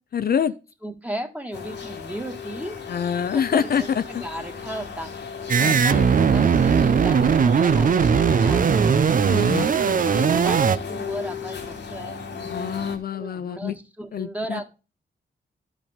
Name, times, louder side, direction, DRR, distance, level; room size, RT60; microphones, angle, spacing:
voice 1, 0.1-0.5 2.9-3.8 5.6-6.1 9.3-9.7 12.5-13.8 14.1-14.6, left 8 dB, 60° left, 0.5 m, -26 dB
voice 2, 0.8-2.8 3.3-5.1 5.6-9.0 9.4-12.2 13.1-14.6, right 1 dB, 10° right, 1.7 m, -36 dB
sound 1, 1.5-13.0, left 5 dB, 85° left, 2.0 m, -35 dB
sound 2, 5.5-10.8, right 6 dB, 50° right, 0.6 m, -19 dB
12.0 x 5.1 x 3.6 m
cardioid pair, 60°, 18 cm